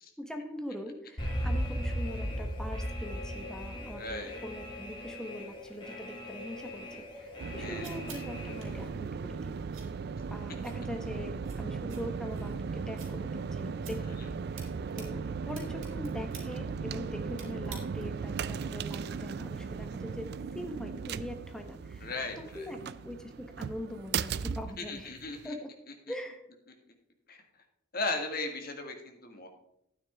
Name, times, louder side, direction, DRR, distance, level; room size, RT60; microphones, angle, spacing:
voice 1, 0.2-9.6 10.3-14.1 14.5-25.1 25.4-25.7 26.1-26.4, left 1 dB, 5° left, 4 dB, 1.0 m, -42 dB
Alarm, 1.2-8.9, equal, 25° left, 2.6 m, -37 dB
voice 2, 4.0-4.4 7.6-7.9 22.0-22.7 24.8-25.5 27.3-27.4 27.9-29.5, left 3 dB, 50° left, 3 dB, 1.8 m, -37 dB
sound 1, 7.2-18.3, right 6 dB, 90° right, 3.2 m, -54 dB
sound 2, 7.4-25.5, right 5 dB, 55° right, 0.3 m, -37 dB
12.0 x 9.5 x 3.5 m, 0.78 s
head